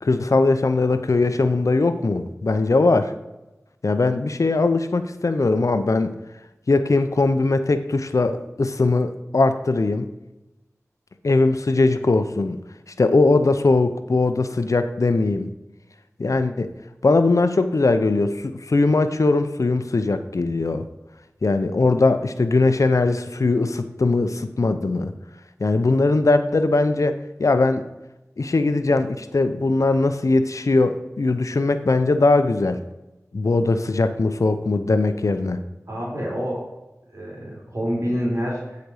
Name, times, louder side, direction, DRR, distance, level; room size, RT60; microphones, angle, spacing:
voice 1, 0.0-3.1 3.8-6.1 6.7-10.1 11.2-12.6 13.0-15.5 16.2-16.7 17.0-20.8 21.4-25.1 25.6-27.8 28.4-32.8 33.3-35.6, left 3 dB, 80° left, 9 dB, 0.6 m, -20 dB
voice 2, 35.9-36.7 37.1-38.8, equal, 70° right, -5 dB, 3.5 m, -27 dB
10.5 x 5.2 x 4.9 m, 0.98 s
wide cardioid pair, 45°, 5 cm